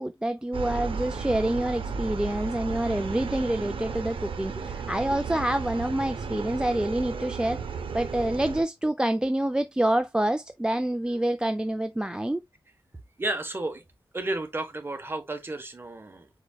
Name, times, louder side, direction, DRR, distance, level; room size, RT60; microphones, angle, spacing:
voice 1, 0.0-7.6 7.9-12.4, right 1 dB, 10° right, 0.4 m, -27 dB
sound 1, 0.5-8.6, right 5 dB, 85° right, 0.8 m, -34 dB
voice 2, 13.2-13.8 14.1-16.3, right 2 dB, 25° right, 1.1 m, -32 dB
4.9 x 4.7 x 2.2 m
wide cardioid pair, 115°, 9 cm